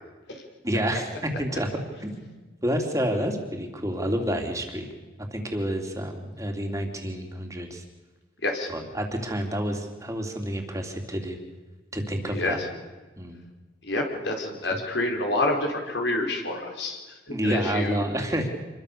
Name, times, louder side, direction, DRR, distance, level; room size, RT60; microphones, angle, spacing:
voice 1, 0.6-2.3 2.6-4.9 5.2-7.8 8.7-11.4 11.9-12.6 13.2-13.4 14.6-14.7 17.3-18.5, equal, 15° right, 3 dB, 3.1 m, -29 dB
voice 2, 12.2-12.7 13.8-17.0 17.3-18.1, left 2 dB, 65° left, 2 dB, 4.5 m, -28 dB
27.0 x 22.5 x 6.9 m, 1.3 s
head